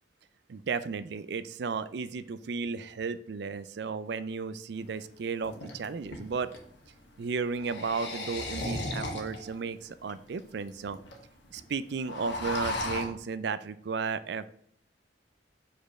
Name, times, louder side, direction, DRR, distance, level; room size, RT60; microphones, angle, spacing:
voice 1, 0.5-6.5 7.2-11.0 11.5-14.5, right 5 dB, 65° right, 14 dB, 0.4 m, -34 dB
sound 1, 4.8-4.9 5.4-6.6 7.5-9.5 10.1-10.2 10.4-10.5 10.7-11.1 11.4-11.6 11.9-13.1, left 2 dB, 70° left, 1.5 m, -35 dB
5.1 x 4.4 x 5.9 m, 0.65 s
head